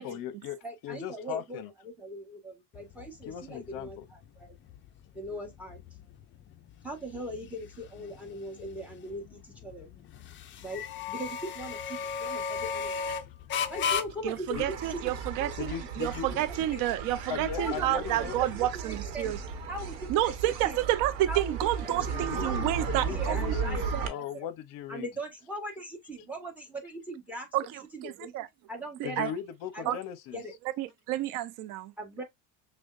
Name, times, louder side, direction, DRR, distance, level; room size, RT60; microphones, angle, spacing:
voice 1, 0.0-1.7 3.3-4.1 13.6-13.7 14.5-14.7 15.6-16.4 17.3-18.4 22.0-22.5 22.8-25.1 29.0-30.4, left 9 dB, 50° left, 0.8 m, -38 dB
voice 2, 0.6-4.6 5.1-5.8 6.8-9.9 10.6-13.1 13.7-14.6 14.9-15.0 15.4-16.9 17.6-18.5 18.8-19.4 19.7-20.3 20.6-20.8 21.3-21.9 22.2-24.5 24.9-28.3 28.7-29.3 29.7-30.0 30.3-30.6 32.0-32.2, equal, 5° right, 1.4 m, -40 dB
sound 1, 2.7-19.9, left 6 dB, 30° left, 0.4 m, -38 dB
voice 3, 14.2-19.4 20.1-23.6 23.9-24.1 27.5-28.5 29.2-29.3 29.9-30.0 30.8-31.9, right 14 dB, 50° right, 0.5 m, -30 dB
sound 2, 14.5-24.1, right 6 dB, 80° right, 1.1 m, -35 dB
6.1 x 2.2 x 2.5 m
supercardioid pair, 110°, 42 cm